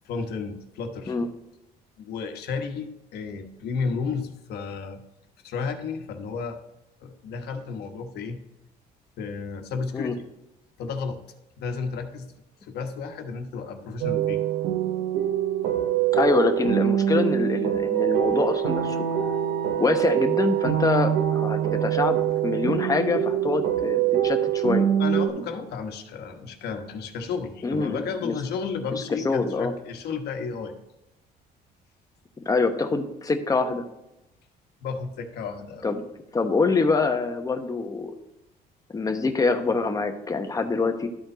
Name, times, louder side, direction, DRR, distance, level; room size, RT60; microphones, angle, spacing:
voice 1, 0.0-1.2 2.0-5.0 5.4-6.6 7.0-8.4 9.2-10.2 10.8-11.2 11.6-12.3 12.6-14.4 25.0-30.7 34.8-35.8, left 5 dB, 75° left, 5 dB, 1.2 m, -32 dB
sound 1, 14.0-25.3, right 10 dB, 80° right, 0.8 m, -24 dB
voice 2, 16.1-19.0 19.8-22.2 22.4-24.9 27.6-28.3 29.2-29.7 32.5-33.8 35.8-36.0 36.3-38.1 38.9-41.1, left 3 dB, 20° left, 6 dB, 1.0 m, -25 dB
Wind instrument woodwind instrument, 17.9-21.8, right 10 dB, 35° right, 2.6 m, -40 dB
12.0 x 4.3 x 4.0 m, 0.90 s
cardioid pair, 110°, 17 cm